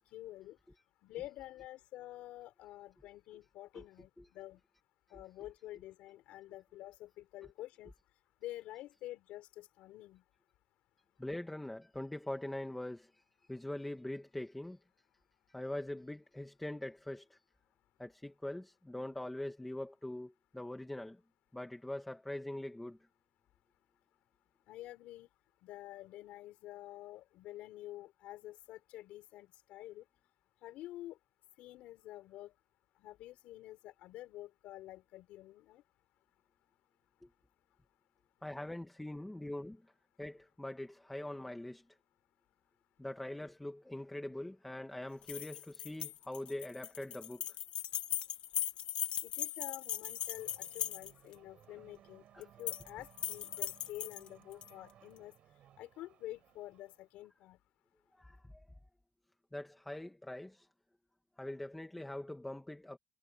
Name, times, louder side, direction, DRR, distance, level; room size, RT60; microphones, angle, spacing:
voice 1, 0.1-0.6 1.0-4.6 5.1-7.9 8.4-10.2 24.7-25.3 25.6-30.0 30.6-31.2 31.6-32.5 33.0-35.8 49.2-55.3 55.8-57.6, left 15 dB, 80° left, 5.0 m, -49 dB
voice 2, 11.2-13.2 13.5-14.8 15.5-17.4 18.0-21.2 21.5-23.0 38.4-39.8 40.2-41.8 43.0-47.4 52.3-52.4 58.2-58.7 59.5-60.7 61.4-63.0, left 1 dB, 5° left, 1.6 m, -43 dB
sound 1, 45.2-51.3 52.4-52.9 53.2-54.7, left 11 dB, 55° left, 1.2 m, -39 dB
Race car auto racing / Accelerating revving vroom, 49.9-57.1, right 11 dB, 55° right, 5.5 m, -63 dB
cardioid pair, 155°, 2 cm